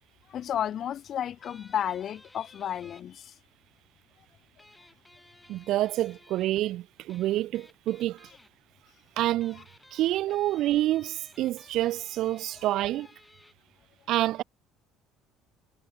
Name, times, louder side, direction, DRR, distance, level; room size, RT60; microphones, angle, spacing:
voice 1, 0.3-3.3, left 10 dB, 50° left, 0.9 m, -32 dB
sound 1, 1.4-3.0 4.6-6.6 7.1-8.5 9.3-13.5, left 2 dB, 10° left, 5.9 m, -56 dB
voice 2, 5.5-8.3 9.2-9.6 9.9-13.1 14.1-14.4, right 15 dB, 65° right, 1.1 m, -27 dB
cardioid pair, 110°, 0 cm